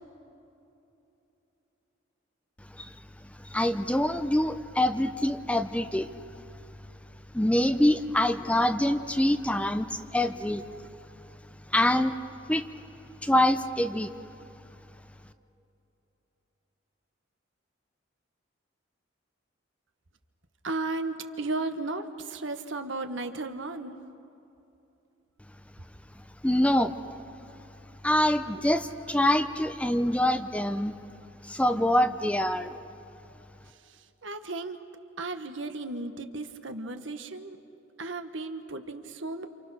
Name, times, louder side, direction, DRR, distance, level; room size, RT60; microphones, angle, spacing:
voice 1, 3.2-6.1 7.3-10.6 11.7-12.1 12.5-12.7 13.2-14.1 26.4-26.9 28.0-31.0 31.4-32.8, left 1 dB, 5° left, 9 dB, 0.6 m, -25 dB
voice 2, 20.6-24.0 33.8-34.8 35.2-37.6 38.0-39.5, right 2 dB, 75° right, 8 dB, 1.5 m, -35 dB
28.5 x 28.0 x 6.5 m, 2.9 s
head